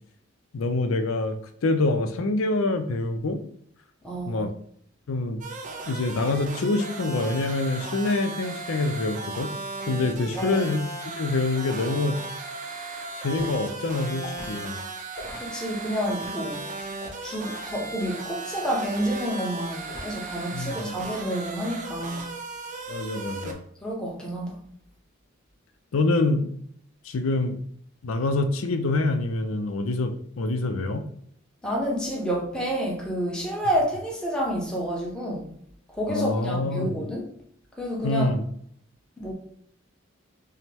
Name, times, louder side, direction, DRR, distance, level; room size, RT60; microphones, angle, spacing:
voice 1, 0.5-1.4 1.6-3.4 4.3-4.5 5.1-5.4 5.9-9.5 9.9-12.2 13.2-14.8 20.5-21.0 22.9-23.6 25.9-26.5 27.0-27.6 28.0-31.0 36.1-37.0 38.0-38.4, left 2 dB, 80° left, 0.5 m, -26 dB
voice 2, 4.0-4.5 10.4-10.7 15.4-16.6 17.2-22.3 23.8-24.6 31.6-35.5 35.9-37.3 37.8-38.3 39.2-39.3, equal, 5° left, 0.8 m, -29 dB
sound 1, 5.4-23.5, right 3 dB, 40° right, 0.5 m, -36 dB
Liquid, 13.3-13.6 14.2-14.5 15.1-15.4 16.0-16.3 17.0-17.3 18.0-18.3 18.9-19.2 19.9-20.3 20.6-20.9, left 2 dB, 50° left, 1.3 m, -41 dB
5.4 x 2.1 x 3.4 m
head